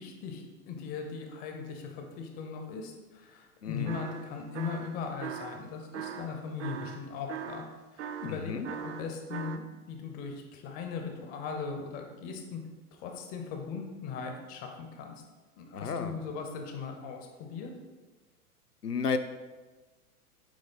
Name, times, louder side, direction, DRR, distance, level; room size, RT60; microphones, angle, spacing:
voice 1, 0.0-7.7 7.9-12.6 12.9-15.2 15.6-17.7, left 5 dB, 20° left, 3 dB, 0.5 m, -39 dB
voice 2, 3.6-4.0 8.2-8.7 15.7-16.1 18.8-19.2, left 5 dB, 85° left, 8 dB, 0.6 m, -32 dB
sound 1, 3.9-4.3 4.5-5.6 5.9-9.6, right 8 dB, 50° right, 0.5 m, -40 dB
8.3 x 3.1 x 4.0 m, 1.3 s
figure-of-eight pair, 95°, 46 cm